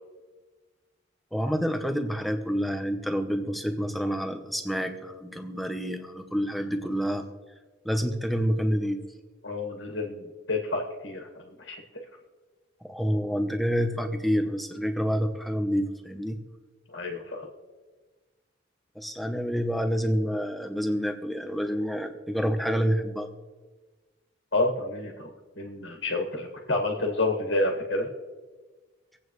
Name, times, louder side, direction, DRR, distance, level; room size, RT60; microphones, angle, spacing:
voice 1, 1.3-7.3 7.8-9.0 12.8-16.4 18.9-23.3, equal, ahead, 5 dB, 0.9 m, -28 dB
voice 2, 9.4-11.8 16.9-17.5 24.5-28.1, left 2 dB, 65° left, 1 dB, 1.9 m, -29 dB
26.0 x 8.7 x 3.2 m, 1.3 s
head